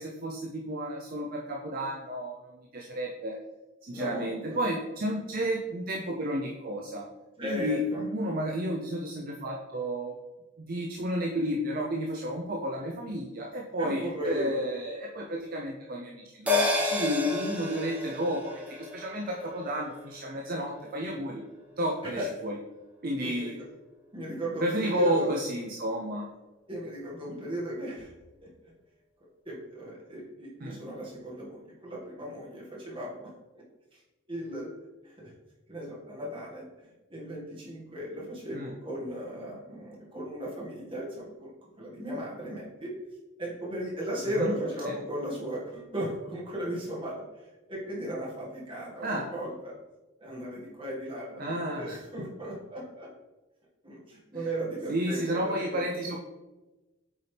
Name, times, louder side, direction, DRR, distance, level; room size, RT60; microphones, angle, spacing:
voice 1, 0.0-3.4 3.8-7.1 7.4-10.1 10.7-21.4 21.8-22.6 23.0-23.5 24.6-26.3 30.6-30.8 38.5-38.7 44.4-44.6 44.9-45.0 49.0-49.3 51.4-52.3 54.4-54.5 54.9-56.2, equal, 45° right, 0 dB, 0.6 m, -32 dB
voice 2, 3.9-4.6 7.4-8.0 13.8-14.7 22.0-22.3 23.2-23.7 24.1-25.4 26.7-28.1 28.4-28.7 29.5-33.6 34.3-34.7 35.0-35.3 35.7-36.7 37.1-42.9 43.4-47.2 47.7-49.8 50.2-53.1 53.8-55.8, equal, 25° right, -5 dB, 1.8 m, -36 dB
sound 1, 16.5-21.2 21.5-21.6, left 2 dB, 5° right, 0.9 m, -31 dB
8.1 x 4.2 x 3.4 m, 1.1 s
head